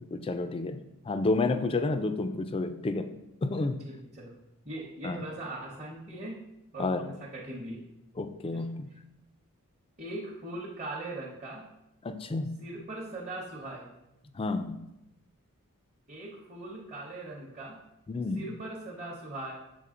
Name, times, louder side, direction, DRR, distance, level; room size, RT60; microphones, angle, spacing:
voice 1, 0.0-3.1 3.4-3.8 5.0-5.2 6.8-7.0 8.2-8.9 12.0-12.6 14.4-14.8 18.1-18.4, left 3 dB, 25° left, 9 dB, 0.3 m, -30 dB
voice 2, 3.9-4.3 4.6-6.4 6.7-7.8 8.5-8.7 10.0-11.6 12.6-13.9 16.1-17.8 18.3-19.5, right 2 dB, 30° right, -5 dB, 0.9 m, -40 dB
6.8 x 3.8 x 3.7 m, 0.88 s
head